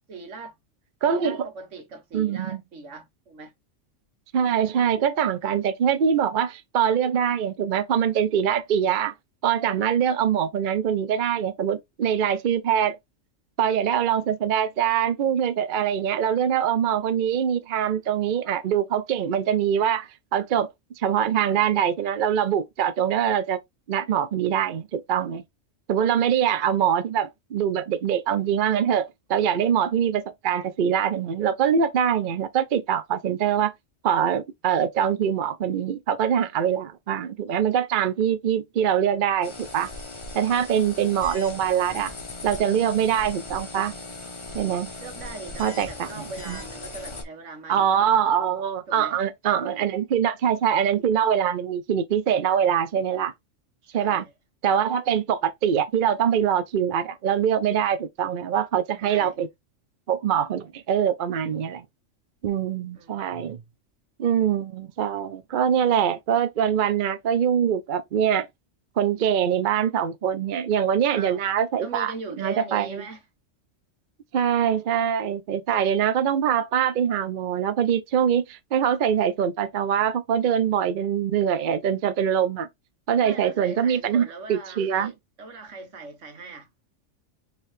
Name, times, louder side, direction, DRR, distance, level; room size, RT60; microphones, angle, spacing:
voice 1, 0.1-0.6 1.1-3.5 45.0-48.2 48.9-49.1 53.8-54.3 59.0-59.4 62.9-63.3 71.1-71.4 71.8-73.2 83.2-86.7, right 3 dB, 75° right, 1.5 m, -40 dB
voice 2, 1.0-1.5 2.1-2.6 4.3-9.1 9.4-13.0 13.6-20.7 21.0-23.6 23.9-25.4 25.9-33.7 34.0-39.9 40.3-42.1 42.4-43.9 44.5-44.9 45.6-46.6 47.7-53.3 53.9-54.3 54.6-59.5 60.1-61.8 62.4-63.6 64.2-68.5 69.0-73.0 74.3-82.7 83.1-85.1, right 8 dB, 55° right, 0.6 m, -23 dB
sound 1, 39.4-47.2, left 2 dB, 25° left, 0.9 m, -39 dB
4.5 x 3.3 x 3.1 m
omnidirectional pair, 1.3 m